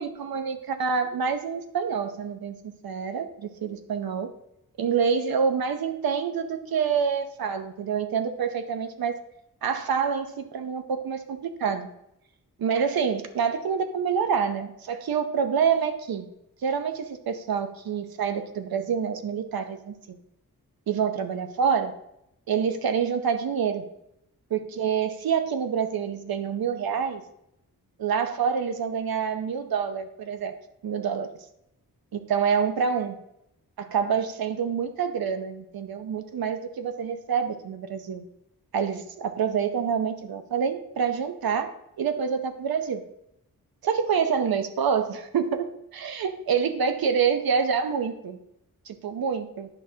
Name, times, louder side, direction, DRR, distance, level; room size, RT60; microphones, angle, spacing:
voice 1, 0.0-4.3 4.8-9.1 9.6-11.9 12.6-16.3 16.6-20.2 20.9-21.9 22.5-23.9 24.5-27.2 28.0-30.5 30.8-31.3 32.1-33.2 33.8-38.2 38.7-41.7 42.0-43.0 43.8-48.4 48.9-49.7, right 6 dB, 75° right, 8 dB, 0.7 m, -27 dB
9.1 x 5.9 x 2.8 m, 0.79 s
wide cardioid pair, 110°, 36 cm